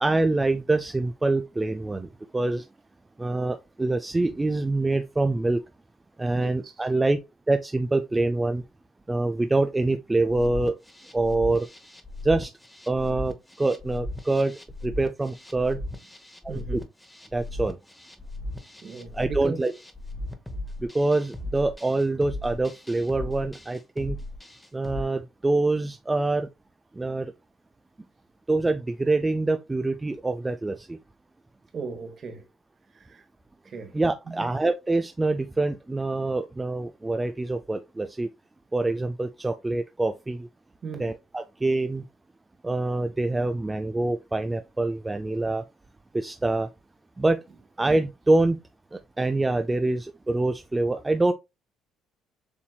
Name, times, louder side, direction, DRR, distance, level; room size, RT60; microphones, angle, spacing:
voice 1, 0.0-2.1 2.3-2.6 3.2-5.6 6.2-7.2 7.5-8.6 9.1-10.7 11.1-11.7 12.2-12.5 12.9-14.5 14.8-15.8 16.4-16.6 17.3-17.8 19.1-19.7 20.8-24.2 24.7-26.5 27.0-27.3 28.5-31.0 33.9-38.3 38.7-40.5 41.0-42.0 42.6-45.6 46.1-46.7 47.2-47.4 47.8-48.6 48.9-51.3, right 2 dB, 15° right, 0.3 m, -25 dB
voice 2, 6.3-6.7 16.5-16.9 18.8-19.7 31.7-32.4 32.9-33.2 33.6-34.0 34.3-34.5 40.8-41.1, right 4 dB, 40° right, 1.2 m, -37 dB
sound 1, 10.3-25.0, left 1 dB, 10° left, 0.9 m, -37 dB
6.9 x 2.9 x 2.2 m
cardioid pair, 100°, 0 cm